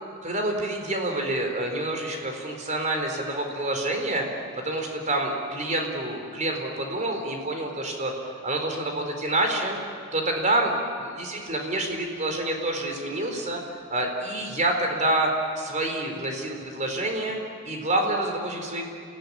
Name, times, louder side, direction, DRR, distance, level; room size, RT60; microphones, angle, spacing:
voice 1, 0.2-4.3 4.6-8.1 8.4-9.8 10.1-10.7 11.0-13.6 13.9-15.3 15.6-17.4 17.6-18.8, right 1 dB, 35° right, 2 dB, 4.4 m, -27 dB
28.5 x 17.0 x 10.0 m, 2.2 s
head